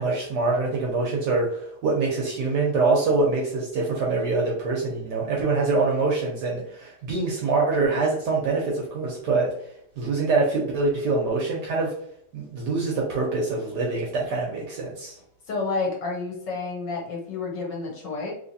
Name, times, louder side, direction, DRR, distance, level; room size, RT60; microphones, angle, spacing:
voice 1, 0.0-9.5 10.0-11.9 12.3-15.2, right 3 dB, 70° right, -2 dB, 1.0 m, -24 dB
voice 2, 15.5-18.3, left 3 dB, 65° left, -1 dB, 1.3 m, -30 dB
3.2 x 3.2 x 2.6 m, 0.69 s
omnidirectional pair, 2.4 m